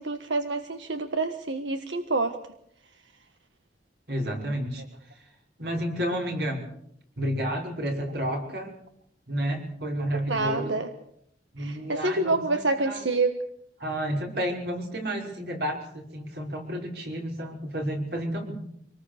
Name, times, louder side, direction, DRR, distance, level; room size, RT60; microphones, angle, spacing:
voice 1, 0.0-2.4 10.1-10.9 11.6-13.4, right 3 dB, 85° right, 7 dB, 1.5 m, -27 dB
voice 2, 4.1-4.8 5.1-5.2 5.6-6.6 7.2-8.7 9.3-10.7 11.5-13.0 13.8-18.5, equal, 60° right, 1 dB, 5.7 m, -31 dB
26.5 x 19.5 x 6.7 m, 0.72 s
head